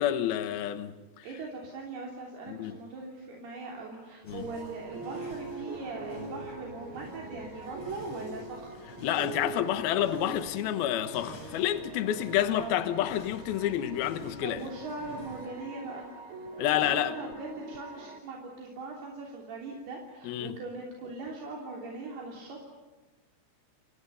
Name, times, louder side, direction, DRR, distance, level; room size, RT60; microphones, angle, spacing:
voice 1, 0.0-1.3 2.5-2.7 4.3-4.4 9.0-14.7 16.6-17.2 20.2-20.6, left 11 dB, 70° left, 3.0 m, -29 dB
voice 2, 1.2-8.7 12.5-12.9 14.4-16.1 16.7-22.6, right 3 dB, 70° right, 5.2 m, -40 dB
sound 1, 4.3-15.5, left 2 dB, 30° left, 5.8 m, -49 dB
sound 2, 4.5-18.2, right 3 dB, 45° right, 3.8 m, -44 dB
29.5 x 28.5 x 5.7 m
omnidirectional pair, 4.8 m